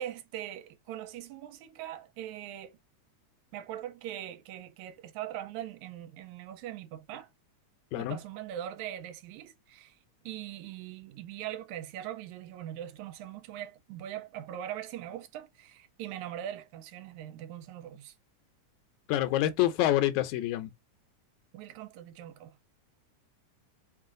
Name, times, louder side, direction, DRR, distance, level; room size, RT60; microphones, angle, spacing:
voice 1, 0.0-2.8 3.5-7.3 7.9-10.0 10.3-18.1 21.5-22.6, right 11 dB, 80° right, 2.0 m, -41 dB
voice 2, 19.1-20.7, left 13 dB, 80° left, 2.0 m, -27 dB
4.5 x 2.5 x 3.7 m
omnidirectional pair, 3.3 m